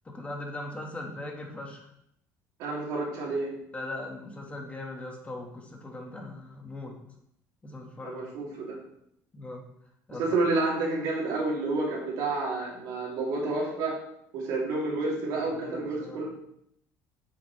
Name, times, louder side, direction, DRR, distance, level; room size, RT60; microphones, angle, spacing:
voice 1, 0.0-1.9 3.7-6.9 7.6-8.2 9.3-9.6 10.1-10.2 15.3-16.3, left 2 dB, 20° left, 1 dB, 1.4 m, -40 dB
voice 2, 2.6-3.5 8.0-8.8 10.2-14.0 14.3-16.3, right 3 dB, 80° right, -3 dB, 2.7 m, -29 dB
8.0 x 6.0 x 3.2 m, 0.74 s
cardioid pair, 115°, 7 cm